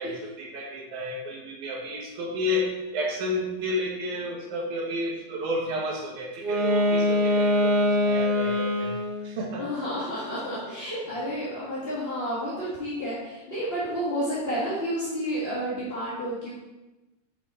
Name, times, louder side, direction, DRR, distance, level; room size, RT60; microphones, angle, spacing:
voice 1, 0.0-9.0 9.2-9.6, left 1 dB, 85° right, -1 dB, 3.0 m, -31 dB
Wind instrument woodwind instrument, 6.3-9.3, left 1 dB, 55° right, 1.1 m, -23 dB
voice 2, 9.6-16.6, equal, 25° left, -9 dB, 1.4 m, -30 dB
8.3 x 5.9 x 4.4 m, 1.1 s
omnidirectional pair, 3.4 m